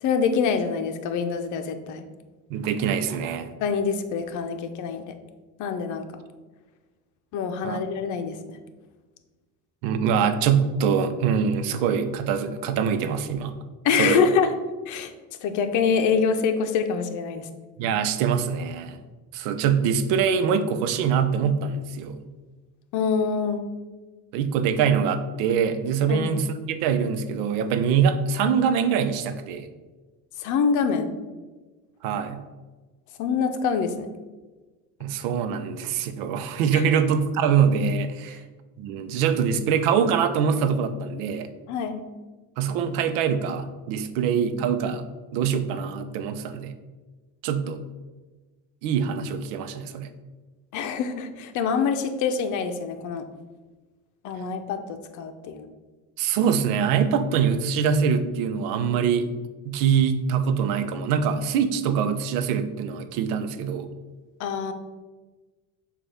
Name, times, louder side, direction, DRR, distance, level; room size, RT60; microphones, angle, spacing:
voice 1, 0.0-2.0 3.6-5.1 5.6-6.0 7.3-8.6 13.8-14.5 14.9-15.1 15.4-17.5 22.9-23.6 26.1-26.3 30.4-31.1 33.2-34.1 36.7-36.9 41.7-42.0 50.7-53.2 54.2-55.7 64.4-64.7, left 6 dB, 60° left, 7 dB, 0.7 m, -25 dB
voice 2, 2.5-3.5 7.6-7.8 9.8-13.5 14.0-14.2 17.8-19.0 19.3-22.2 24.3-29.7 32.0-32.4 35.0-38.4 38.8-41.5 42.6-45.0 45.3-46.7 47.4-47.9 48.8-50.1 56.2-59.3 59.6-63.9, right 7 dB, 80° right, 9 dB, 0.7 m, -24 dB
6.8 x 2.5 x 5.5 m, 1.3 s
supercardioid pair, 105°, 34 cm